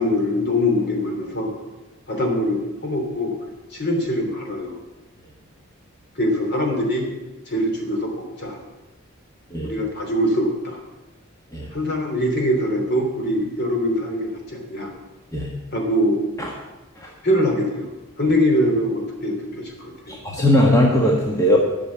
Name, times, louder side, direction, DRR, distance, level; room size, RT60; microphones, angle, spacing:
voice 1, 0.0-1.5 2.1-3.4 3.7-4.8 6.2-7.0 7.5-8.6 9.6-10.8 11.7-14.9 15.7-16.2 17.2-17.9 18.2-20.2, left 1 dB, 50° left, 2 dB, 3.1 m, -23 dB
voice 2, 20.1-21.6, left 1 dB, 15° left, -2 dB, 1.5 m, -19 dB
12.5 x 6.2 x 9.5 m, 1.1 s
head